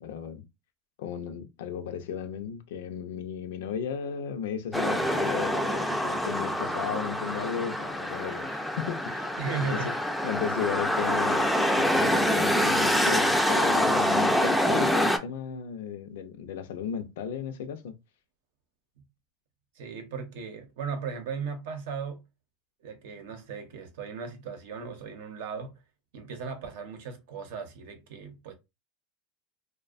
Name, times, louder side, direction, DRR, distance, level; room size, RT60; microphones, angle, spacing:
voice 1, 0.0-0.4 1.0-9.3 9.6-9.8 10.2-18.0, left 7 dB, 85° left, 0.5 m, -35 dB
sound 1, 4.7-15.2, equal, ahead, 0.3 m, -26 dB
voice 2, 9.4-10.0 19.8-22.2 22.8-25.7 26.1-28.5, right 5 dB, 80° right, 0.7 m, -36 dB
2.5 x 2.1 x 2.4 m
supercardioid pair, 135°, 0 cm